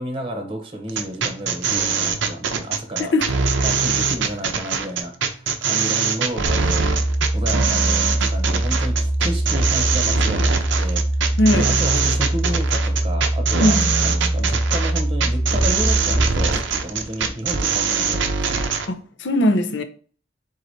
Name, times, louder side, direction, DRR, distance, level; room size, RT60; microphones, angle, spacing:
voice 1, 0.0-3.1 3.6-6.9 7.3-11.4 11.6-13.8 14.0-18.6, right 1 dB, 30° right, 0.9 m, -31 dB
sound 1, 0.9-18.9, right 5 dB, 70° right, 0.6 m, -22 dB
sound 2, 6.4-16.5, right 1 dB, 10° left, 0.9 m, -22 dB
voice 2, 11.4-11.7 13.6-13.9 18.9-19.8, left 1 dB, 65° left, 0.7 m, -19 dB
4.6 x 4.0 x 2.7 m
head